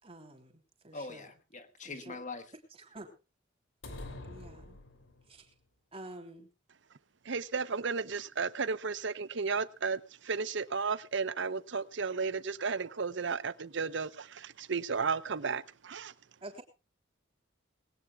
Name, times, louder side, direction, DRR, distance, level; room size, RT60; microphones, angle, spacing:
voice 1, 0.0-1.3 1.8-2.2 2.8-3.1 4.2-4.8 5.3-5.4 5.9-6.5 16.4-16.6, right 2 dB, 30° right, 3.4 m, -48 dB
voice 2, 0.9-2.5, left 3 dB, 40° left, 1.4 m, -43 dB
sound 1, 3.8-5.4, left 2 dB, 80° left, 3.1 m, -46 dB
voice 3, 7.3-16.1, right 5 dB, 65° right, 0.8 m, -34 dB
20.5 x 18.0 x 2.4 m
head